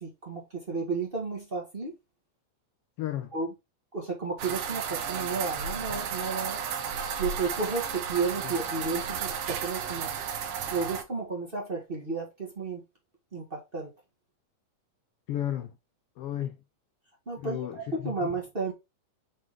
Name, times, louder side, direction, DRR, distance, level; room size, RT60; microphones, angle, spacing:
voice 1, 0.0-1.9 3.3-3.5 3.9-6.6 7.2-10.1 10.7-12.8 13.3-13.9 17.3-18.7, right 4 dB, 25° right, 1.4 m, -32 dB
voice 2, 3.0-3.3 15.3-15.7 16.2-16.6 17.4-18.3, left 12 dB, 85° left, 1.3 m, -33 dB
sound 1, 4.4-11.0, right 6 dB, 65° right, 1.7 m, -33 dB
6.4 x 3.9 x 3.7 m
omnidirectional pair, 3.4 m